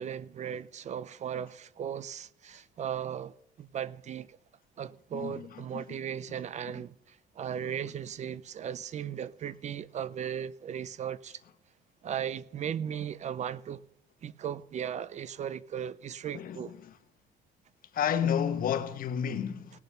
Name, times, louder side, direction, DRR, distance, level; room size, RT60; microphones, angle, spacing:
voice 1, 0.0-4.4 4.8-11.4 12.0-13.8 14.2-16.7, right 9 dB, 45° right, 0.5 m, -37 dB
voice 2, 17.9-19.7, left 8 dB, 55° left, 1.2 m, -30 dB
18.5 x 6.7 x 5.6 m
cardioid pair, 110°, 17 cm